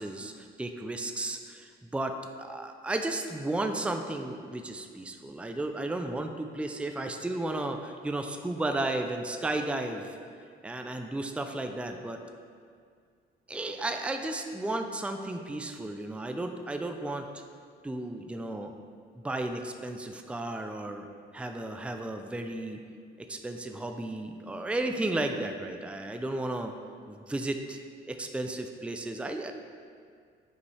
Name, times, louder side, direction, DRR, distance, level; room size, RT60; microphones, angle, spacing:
voice 1, 0.0-10.2 10.6-12.2 13.5-17.3 17.8-18.7 19.2-21.1 21.3-22.8 23.2-26.7 27.1-27.8 28.1-29.5, right 2 dB, 5° right, 5 dB, 0.4 m, -34 dB
8.0 x 5.2 x 3.3 m, 2.1 s
cardioid pair, 90°, 20 cm